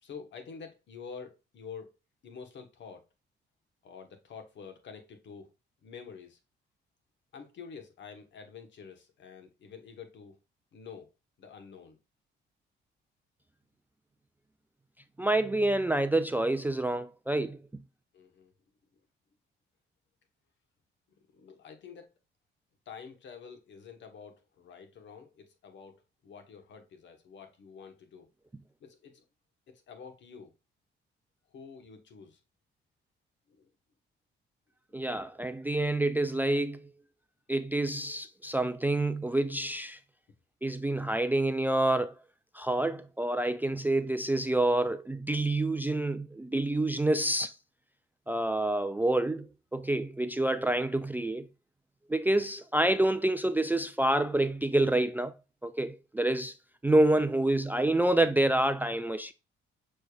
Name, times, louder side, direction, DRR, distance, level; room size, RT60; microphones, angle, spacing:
voice 1, 0.0-1.9 2.2-3.0 3.8-5.5 5.8-6.4 7.3-10.4 10.7-11.1 11.4-12.0 18.1-18.5 21.3-22.1 22.9-28.3 28.8-29.2 29.7-30.5 31.5-32.4 33.5-33.7 35.2-35.3, left 6 dB, 65° left, 1.1 m, -48 dB
voice 2, 15.2-17.8 34.9-36.9 37.5-40.0 40.6-42.1 42.5-47.5 48.3-51.5 52.1-55.3 55.6-56.5 56.8-59.3, right 1 dB, 10° right, 0.3 m, -27 dB
6.3 x 3.3 x 2.3 m
cardioid pair, 90°, 20 cm